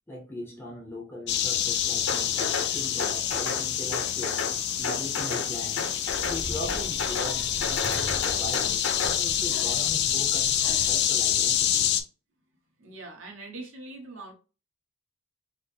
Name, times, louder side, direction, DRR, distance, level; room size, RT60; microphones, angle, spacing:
voice 1, 0.1-5.9 6.2-11.9, left 1 dB, 10° left, 0.6 m, -40 dB
sound 1, 1.3-12.0, left 10 dB, 50° left, 0.3 m, -27 dB
sound 2, 2.1-2.7 3.0-3.6 3.9-4.6 4.8-5.5 5.8-6.4 6.7-7.3 7.6-9.2, left 4 dB, 65° left, 0.8 m, -32 dB
sound 3, 6.0-11.0, equal, 20° right, 0.8 m, -41 dB
voice 2, 12.8-14.3, right 2 dB, 60° right, 1.0 m, -42 dB
4.3 x 2.0 x 3.3 m
head